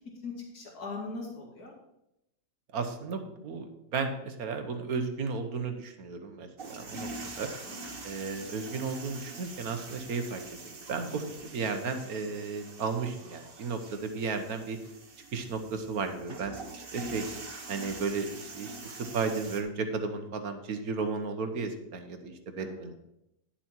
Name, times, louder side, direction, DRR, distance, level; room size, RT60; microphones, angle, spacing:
voice 1, 0.2-1.7 6.9-7.0 7.7-7.8 22.6-22.9, left 3 dB, 60° left, -2 dB, 2.8 m, -40 dB
voice 2, 2.7-7.1 7.4-7.5 8.0-14.8 15.3-17.3 17.7-23.0, right 4 dB, 60° right, 7 dB, 1.4 m, -34 dB
sound 1, 6.6-19.6, right 3 dB, 35° right, 1.2 m, -44 dB
10.5 x 7.2 x 4.5 m, 0.85 s
omnidirectional pair, 1.9 m